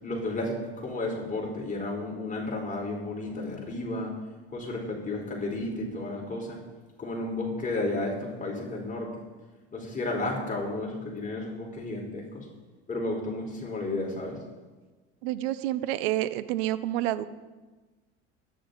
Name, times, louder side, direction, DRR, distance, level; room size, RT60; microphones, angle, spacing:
voice 1, 0.0-4.1 4.5-6.6 7.0-9.1 9.7-12.5 12.9-14.4, left 2 dB, 25° left, -1 dB, 4.6 m, -32 dB
voice 2, 15.2-17.3, right 14 dB, 80° right, 14 dB, 0.9 m, -28 dB
23.5 x 10.0 x 4.1 m, 1.3 s
supercardioid pair, 85°, 30 cm